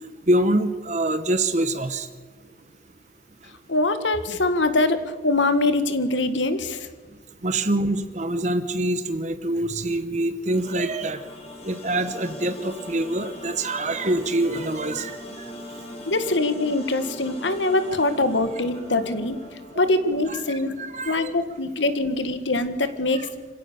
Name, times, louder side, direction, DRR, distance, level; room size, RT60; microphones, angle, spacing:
voice 1, 0.3-2.1 7.4-11.2 11.6-15.2 20.3-21.3, right 1 dB, 40° right, 10 dB, 1.1 m, -25 dB
voice 2, 3.7-6.9 16.0-20.7 21.0-23.3, left 2 dB, 85° left, 10 dB, 1.8 m, -23 dB
sound 1, 10.5-21.6, left 1 dB, 35° left, 3.8 m, -41 dB
26.0 x 17.0 x 7.0 m, 1.4 s
head